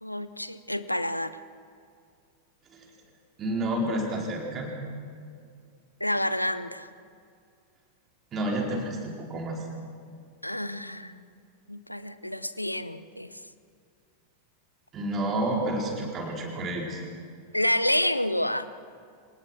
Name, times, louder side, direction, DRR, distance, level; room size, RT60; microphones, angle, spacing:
voice 1, 0.0-1.4 6.0-6.9 10.4-11.3 11.7-13.4 17.5-18.7, left 1 dB, 90° left, 13 dB, 0.8 m, -29 dB
voice 2, 3.4-4.7 8.3-9.6 14.9-17.0, right 1 dB, 25° right, 0 dB, 4.6 m, -30 dB
25.0 x 19.0 x 6.2 m, 2.3 s
figure-of-eight pair, 90°, 0 cm